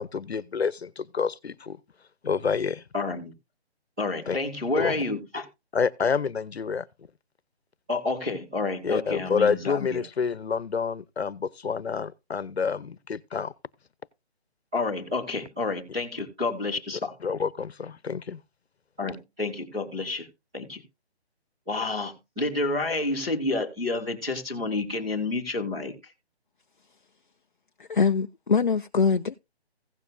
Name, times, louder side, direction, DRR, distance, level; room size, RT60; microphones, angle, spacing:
voice 1, 0.0-1.8 2.2-2.8 4.3-4.4 4.8-5.0 5.7-6.9 8.8-13.5 17.2-18.4, left 5 dB, 70° left, 1.0 m, -28 dB
voice 2, 2.9-3.3 4.0-5.5 7.9-10.0 14.7-17.1 19.0-20.3 20.5-20.8 21.7-26.0, left 3 dB, 5° right, 0.9 m, -29 dB
voice 3, 27.8-29.3, left 5 dB, 50° left, 0.5 m, -23 dB
16.5 x 7.1 x 2.7 m
hypercardioid pair, 175°, 33 cm